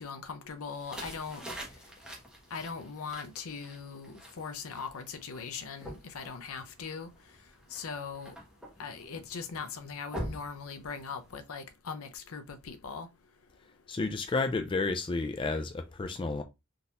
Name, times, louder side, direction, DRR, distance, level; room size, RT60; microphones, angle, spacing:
voice 1, 0.0-1.4 2.5-7.1 7.7-8.3 8.8-13.1, left 5 dB, 70° left, 0.6 m, -40 dB
sound 1, 0.7-11.4, equal, 5° right, 1.0 m, -46 dB
voice 2, 13.9-16.4, left 3 dB, 25° left, 0.3 m, -31 dB
3.7 x 2.8 x 2.5 m
head